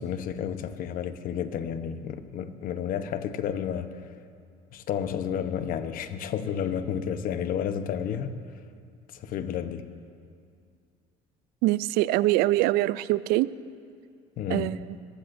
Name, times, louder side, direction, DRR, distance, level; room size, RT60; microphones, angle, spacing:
voice 1, 0.0-3.9 4.7-8.4 9.1-9.9 14.4-14.8, left 8 dB, 60° left, 9 dB, 0.9 m, -31 dB
voice 2, 11.6-13.5 14.5-14.8, right 17 dB, 70° right, 17 dB, 0.4 m, -23 dB
23.0 x 15.5 x 2.6 m, 2.3 s
supercardioid pair, 90°, 17 cm